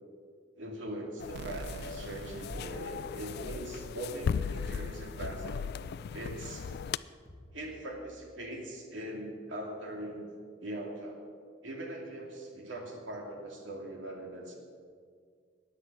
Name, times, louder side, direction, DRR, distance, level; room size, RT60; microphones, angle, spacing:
voice 1, 0.6-5.6 6.1-6.8 7.5-10.3 10.6-11.2 11.6-14.6, right 1 dB, 85° right, 0 dB, 2.6 m, -41 dB
sound 1, 1.2-7.0, left 6 dB, 60° left, 0.3 m, -37 dB
sound 2, 1.3-4.1, right 3 dB, 65° right, 0.6 m, -47 dB
sound 3, 1.5-1.8 2.5-2.7 3.4-3.7 5.3-5.7 7.3-7.8, equal, 15° right, 2.1 m, -47 dB
15.0 x 10.0 x 6.1 m, 2.1 s
head